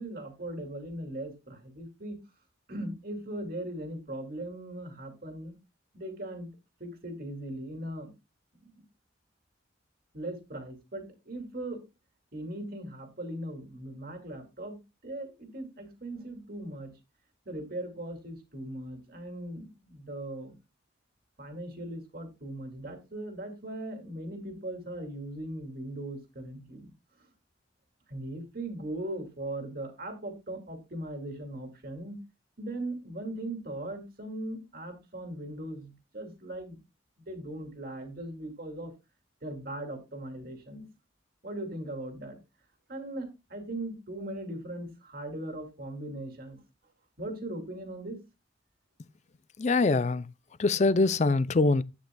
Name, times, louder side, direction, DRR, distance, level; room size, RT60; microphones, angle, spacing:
voice 1, 0.0-2.2 2.7-5.5 5.9-6.5 6.8-8.1 10.1-11.8 12.3-14.8 15.0-16.9 17.5-20.6 21.4-26.9 27.2-27.3 28.1-32.2 32.6-36.8 37.2-38.9 39.4-40.8 41.4-42.4 42.9-46.6 47.2-48.2, right 1 dB, 50° right, 2.4 m, -39 dB
voice 2, 49.6-50.3 50.6-51.8, left 3 dB, 35° left, 0.4 m, -23 dB
11.0 x 9.1 x 2.3 m
head